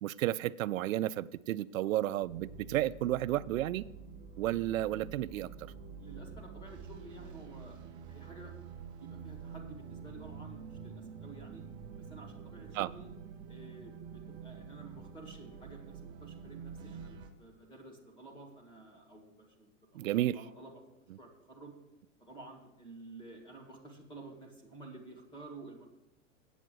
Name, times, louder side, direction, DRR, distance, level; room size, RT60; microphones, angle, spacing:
voice 1, 0.0-3.9 4.4-5.5 12.7-12.9 19.9-20.4, right 14 dB, 90° right, 0.5 m, -32 dB
sound 1, 2.2-17.3, right 6 dB, 15° right, 0.4 m, -47 dB
voice 2, 6.0-7.8 8.1-8.5 8.9-11.6 12.0-13.1 13.5-20.8 21.2-21.7 22.2-25.9, right 2 dB, 10° left, 1.8 m, -51 dB
8.5 x 8.0 x 6.2 m
supercardioid pair, 160°, 39 cm